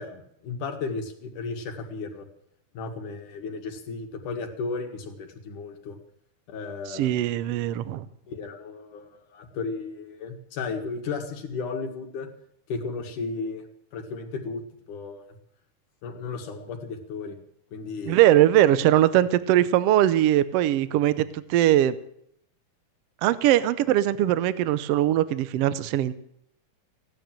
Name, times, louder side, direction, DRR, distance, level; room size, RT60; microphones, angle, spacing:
voice 1, 0.0-2.3 2.7-6.0 6.5-7.1 8.3-12.3 12.7-13.7 13.9-14.6 14.9-15.2 16.0-17.4 17.7-18.2, left 4 dB, 75° left, 4 dB, 3.3 m, -34 dB
voice 2, 6.9-8.1 18.1-22.0 23.2-26.1, right 13 dB, 90° right, 15 dB, 1.3 m, -21 dB
16.5 x 10.5 x 7.5 m, 0.71 s
omnidirectional pair, 3.7 m